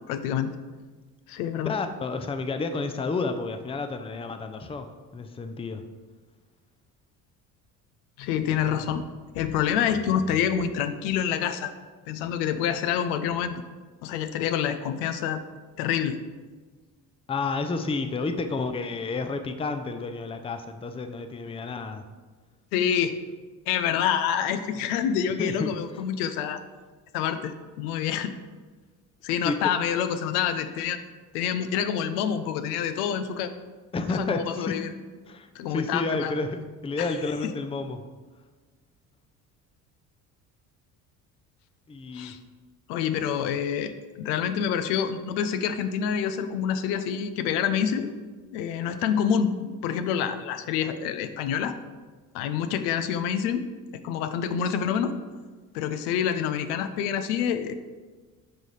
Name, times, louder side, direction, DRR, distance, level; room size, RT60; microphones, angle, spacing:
voice 1, 0.1-0.5 1.3-1.8 8.2-9.1 9.3-11.7 12.1-13.6 14.0-15.4 15.8-16.2 22.7-23.2 23.7-26.6 27.1-28.3 29.2-31.0 31.3-33.5 34.1-34.9 35.5-36.3 37.0-37.1 42.1-42.4 42.9-43.9 44.2-48.1 48.5-51.7 52.3-53.6 54.0-55.2 55.7-57.7, left 8 dB, 75° left, 10 dB, 0.6 m, -27 dB
voice 2, 1.6-4.9 5.1-5.8 17.3-22.1 25.4-26.0 29.4-29.6 33.9-34.7 35.3-38.0 41.9-42.4, left 3 dB, 15° left, 8 dB, 0.5 m, -30 dB
11.0 x 3.8 x 3.2 m, 1.3 s
hypercardioid pair, 60°, 46 cm